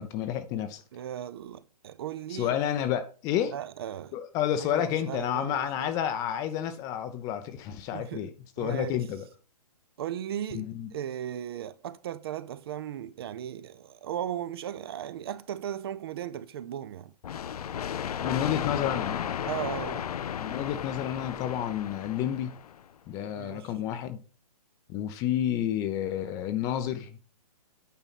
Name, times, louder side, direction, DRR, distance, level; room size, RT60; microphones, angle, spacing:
voice 1, 0.0-0.8 2.3-3.5 4.1-8.3 8.6-9.2 10.5-10.9 18.2-19.3 20.4-22.5 23.1-24.2 24.9-27.2, left 10 dB, 15° left, 0.6 m, -30 dB
voice 2, 0.9-2.5 3.5-4.1 4.6-5.9 7.9-9.0 10.0-17.1 19.4-20.1 23.2-23.7, right 10 dB, 40° right, 0.6 m, -37 dB
sound 1, 17.2-22.8, left 9 dB, 70° left, 0.5 m, -34 dB
9.1 x 5.4 x 4.1 m
hypercardioid pair, 150°, 20 cm